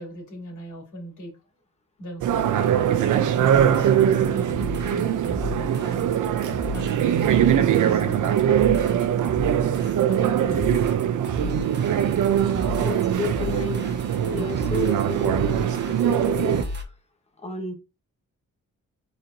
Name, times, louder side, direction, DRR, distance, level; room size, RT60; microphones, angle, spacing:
voice 1, 0.0-1.3 2.0-3.0 3.5-6.2 6.7-9.4 10.1-10.9, equal, 75° left, -1 dB, 2.7 m, -38 dB
sound 1, 2.2-16.6, right 9 dB, 85° right, 0.6 m, -22 dB
sound 2, 3.7-16.8, left 1 dB, 35° right, 1.0 m, -35 dB
voice 2, 12.8-16.7 17.4-17.7, left 5 dB, 20° left, 3 dB, 1.0 m, -32 dB
4.4 x 4.2 x 2.6 m, 0.28 s
wide cardioid pair, 165°, 30 cm